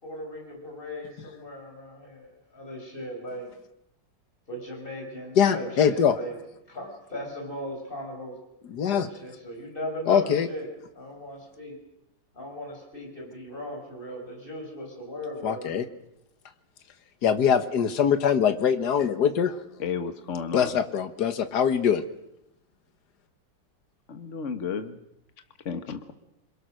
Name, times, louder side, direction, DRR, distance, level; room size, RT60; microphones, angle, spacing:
voice 1, 0.0-3.5 4.5-6.4 6.7-8.4 8.9-11.8 12.3-15.8, equal, 25° left, 1 dB, 5.8 m, -38 dB
voice 2, 5.4-6.2 8.7-9.1 10.1-10.5 15.4-15.8 17.2-19.6 20.5-22.0, left 7 dB, 60° left, 9 dB, 1.9 m, -23 dB
voice 3, 19.8-20.8 24.1-25.0 25.7-26.1, left 6 dB, 40° left, 8 dB, 1.8 m, -32 dB
28.0 x 22.5 x 6.5 m, 0.85 s
omnidirectional pair, 2.0 m